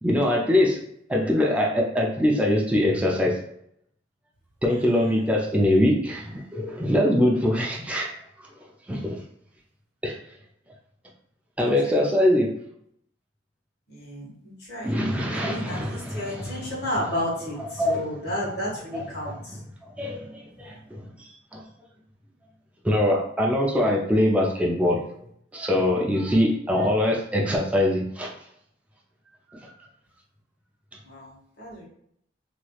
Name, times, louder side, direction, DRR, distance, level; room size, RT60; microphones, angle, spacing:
voice 1, 0.0-0.8 1.1-3.4 4.6-8.1 8.9-9.2 10.0-10.2 11.6-12.5 14.8-19.6 20.0-21.6 22.8-25.0 25.5-28.3, left 1 dB, 5° right, -2 dB, 0.4 m, -23 dB
voice 2, 13.9-14.3 14.7-14.9 15.3-17.6 17.9-19.3 31.1-31.3 31.6-31.9, equal, 65° left, -6 dB, 1.4 m, -31 dB
3.1 x 3.0 x 2.3 m, 0.71 s
head